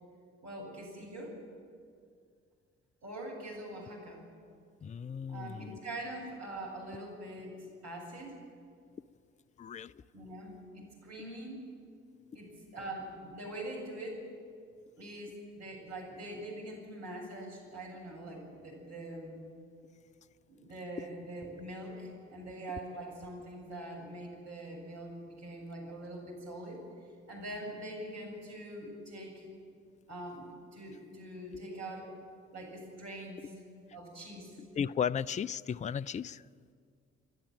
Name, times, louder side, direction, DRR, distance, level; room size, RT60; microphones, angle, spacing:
voice 1, 0.4-1.4 3.0-4.2 5.3-8.4 10.1-11.6 12.3-14.3 15.0-19.4 20.5-26.8 27.3-29.4 30.1-32.1 32.5-33.5 33.9-34.6, right 1 dB, 55° right, -1 dB, 7.6 m, -43 dB
voice 2, 4.8-5.8 9.6-10.0 34.7-36.5, left 7 dB, 20° left, 17 dB, 0.5 m, -35 dB
29.0 x 11.5 x 9.0 m, 2.2 s
figure-of-eight pair, 45°, 33 cm